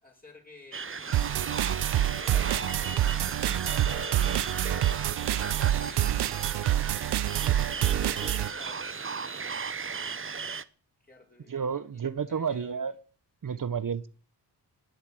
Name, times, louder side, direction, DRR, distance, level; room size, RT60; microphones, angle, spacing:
voice 1, 0.0-4.8 5.2-7.1 7.9-9.7 11.0-12.8, left 2 dB, 20° left, 6.5 m, -54 dB
sound 1, 0.7-10.6, right 5 dB, 30° right, 1.0 m, -35 dB
sound 2, 1.1-8.5, right 12 dB, 75° right, 0.6 m, -27 dB
voice 2, 11.5-13.0 13.4-14.1, right 6 dB, 50° right, 1.2 m, -31 dB
19.5 x 8.0 x 7.9 m
cardioid pair, 65°, 41 cm